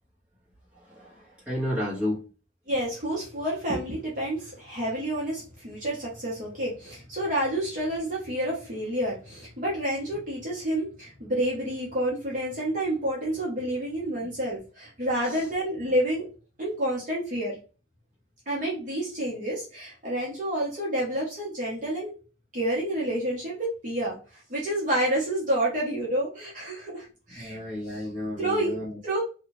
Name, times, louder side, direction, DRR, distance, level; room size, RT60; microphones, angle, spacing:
voice 1, 0.7-2.2 15.2-15.4 27.4-29.0, left 1 dB, 5° right, -8 dB, 1.3 m, -32 dB
voice 2, 2.7-16.3 16.6-17.6 18.5-22.1 22.5-24.2 24.5-27.6 27.8-28.0 28.4-28.7 29.0-29.2, right 1 dB, 40° right, -5 dB, 0.9 m, -29 dB
2.7 x 2.3 x 3.0 m, 0.35 s
head